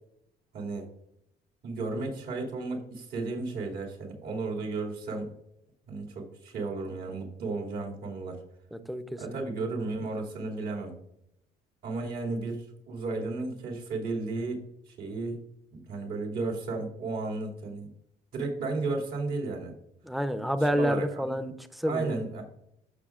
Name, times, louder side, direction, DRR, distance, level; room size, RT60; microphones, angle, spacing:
voice 1, 0.5-0.9 1.6-5.3 5.9-8.4 9.2-11.0 11.8-15.4 15.7-17.9 18.3-19.7 20.6-21.3 21.9-22.4, right 3 dB, 65° right, 0 dB, 2.6 m, -34 dB
voice 2, 8.7-9.4 20.0-22.2, equal, ahead, 10 dB, 0.6 m, -29 dB
13.5 x 5.9 x 2.4 m, 0.79 s
cardioid pair, 110°, 17 cm